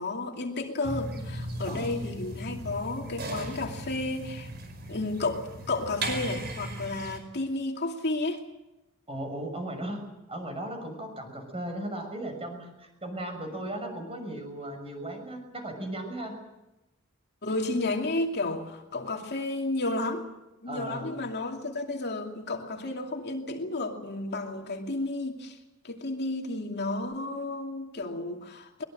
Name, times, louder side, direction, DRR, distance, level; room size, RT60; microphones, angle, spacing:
voice 1, 0.0-4.5 4.9-8.4 17.4-20.3 20.6-25.6 25.8-28.8, left 2 dB, 50° left, 2 dB, 2.5 m, -32 dB
sound 1, 0.8-7.2, right 1 dB, 50° right, 5.1 m, -37 dB
voice 2, 1.6-2.0 9.1-10.0 10.3-16.3 20.7-21.2, right 1 dB, 25° right, 5 dB, 6.3 m, -36 dB
23.5 x 21.0 x 7.8 m, 0.98 s
head